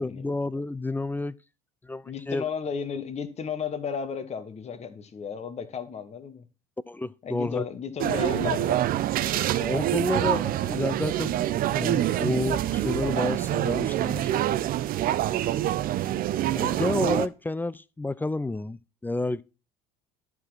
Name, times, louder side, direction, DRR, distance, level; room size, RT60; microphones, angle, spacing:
voice 1, 0.0-1.3 1.8-2.4 2.9-3.0 6.9-7.6 9.6-11.4 11.8-14.5 16.6-18.8 19.0-19.4, left 2 dB, 10° left, 0.4 m, -30 dB
voice 2, 2.0-6.4 7.2-8.9, left 7 dB, 35° left, 1.3 m, -33 dB
sound 1, 8.0-17.3, right 13 dB, 50° right, 0.6 m, -26 dB
11.0 x 4.8 x 5.8 m
hypercardioid pair, 70°, 19 cm